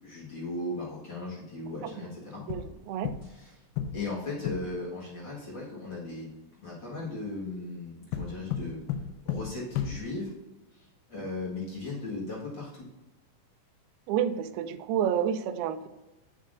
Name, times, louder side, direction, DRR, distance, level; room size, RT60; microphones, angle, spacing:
voice 1, 0.0-2.4 3.3-3.5 3.9-8.8 9.2-10.3 10.7-12.9, left 2 dB, 55° left, -6 dB, 1.3 m, -37 dB
sound 1, 2.5-3.5 3.8-4.8 8.1-10.4, left 8 dB, 80° left, 2.5 m, -35 dB
voice 2, 2.5-3.1 14.1-15.9, right 9 dB, 80° right, 9 dB, 2.3 m, -30 dB
8.2 x 7.5 x 2.6 m, 1.0 s
omnidirectional pair, 4.9 m